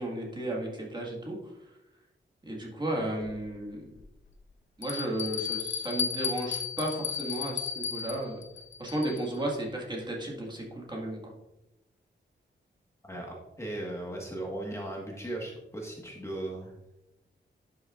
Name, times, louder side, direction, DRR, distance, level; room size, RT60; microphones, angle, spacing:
voice 1, 0.0-1.5 2.4-3.9 4.8-8.4 8.8-11.3, right 1 dB, 20° right, -2 dB, 1.8 m, -34 dB
Bell, 3.2-3.3 4.0-4.1 4.8-9.4, left 7 dB, 85° left, 0.9 m, -34 dB
voice 2, 13.0-16.7, right 1 dB, 15° left, -2 dB, 1.5 m, -37 dB
11.0 x 6.5 x 2.5 m, 0.91 s
wide cardioid pair, 145°, 20 cm